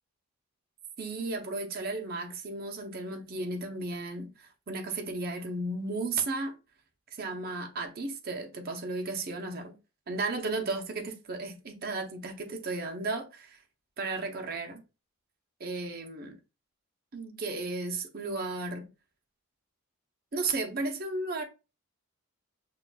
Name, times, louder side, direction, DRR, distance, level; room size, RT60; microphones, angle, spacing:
voice 1, 1.0-6.6 7.1-9.8 10.1-13.6 14.0-14.8 15.6-16.4 17.1-18.9 20.3-21.4, right 3 dB, 45° right, 0.6 m, -34 dB
5.6 x 2.2 x 2.3 m
head